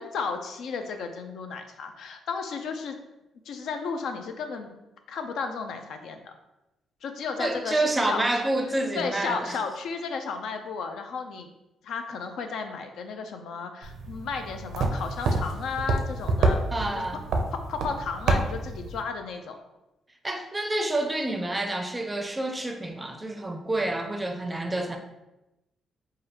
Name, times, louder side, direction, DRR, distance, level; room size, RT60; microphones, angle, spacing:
voice 1, 0.0-3.0 3.5-4.7 5.1-6.3 7.0-8.4 8.9-11.5 11.8-17.1 17.5-19.6, left 5 dB, 75° left, 6 dB, 0.4 m, -34 dB
voice 2, 7.4-9.6 16.7-17.2 20.2-25.0, right 2 dB, 15° right, 5 dB, 0.4 m, -28 dB
sound 1, 13.8-19.0, right 2 dB, 75° right, 0.5 m, -28 dB
4.9 x 2.3 x 2.9 m, 0.96 s
cardioid pair, 110°, 0 cm